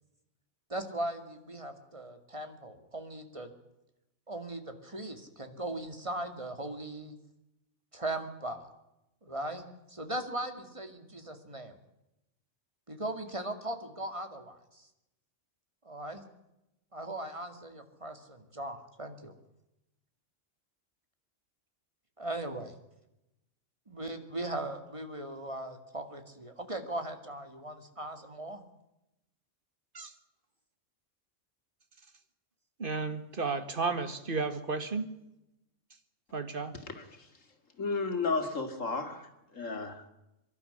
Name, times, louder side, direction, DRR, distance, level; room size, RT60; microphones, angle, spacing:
voice 1, 0.7-3.5 4.3-7.2 7.9-8.7 9.2-11.8 12.9-14.9 15.8-16.2 16.9-19.3 22.2-22.7 23.9-28.6, right 1 dB, 25° right, 7 dB, 2.4 m, -39 dB
voice 2, 32.8-35.1 36.3-36.7, right 4 dB, 45° right, 9 dB, 1.9 m, -33 dB
voice 3, 37.8-39.3 39.5-40.0, left 4 dB, 90° left, 6 dB, 2.8 m, -32 dB
24.0 x 12.0 x 9.9 m, 0.90 s
omnidirectional pair, 1.3 m